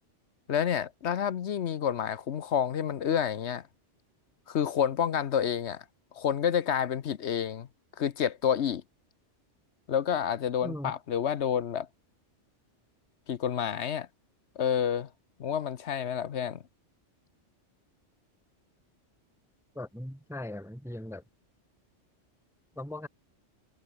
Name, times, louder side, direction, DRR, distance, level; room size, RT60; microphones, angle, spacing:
voice 1, 0.5-3.6 4.5-5.8 6.1-7.7 8.0-8.8 9.9-11.9 13.3-14.1 14.6-15.1 15.4-16.6, left 8 dB, 65° left, 1.1 m, -29 dB
voice 2, 10.6-10.9 19.8-21.2 22.8-23.1, left 1 dB, ahead, 0.9 m, -39 dB
omnidirectional pair, 1.2 m